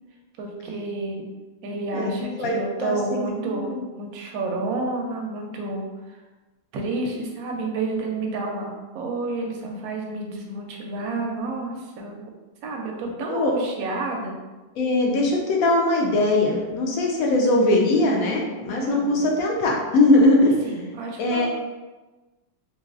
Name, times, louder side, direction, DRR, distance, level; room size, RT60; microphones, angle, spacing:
voice 1, 0.4-1.2 1.6-6.2 6.7-12.3 12.6-14.4 18.7-19.3 20.6-21.5, right 3 dB, 70° right, 0 dB, 0.9 m, -30 dB
voice 2, 1.9-2.5 2.8-3.8 9.6-9.7 13.3-13.5 14.8-20.6 21.2-21.5, left 2 dB, 70° left, -1 dB, 0.9 m, -21 dB
3.0 x 2.8 x 2.4 m, 1.2 s
omnidirectional pair, 1.9 m